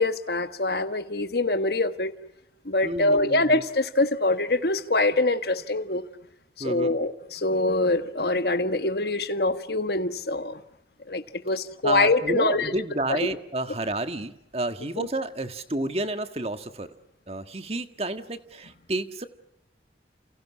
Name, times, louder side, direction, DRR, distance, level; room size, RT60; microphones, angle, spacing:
voice 1, 0.0-2.1 2.6-6.0 6.6-10.6 11.1-12.7 13.1-13.2 15.0-15.1, left 2 dB, 65° left, 1.5 m, -24 dB
voice 2, 2.8-3.6 6.6-6.9 11.8-16.9 17.3-19.2, right 2 dB, 35° right, 1.6 m, -30 dB
29.5 x 29.0 x 6.2 m
head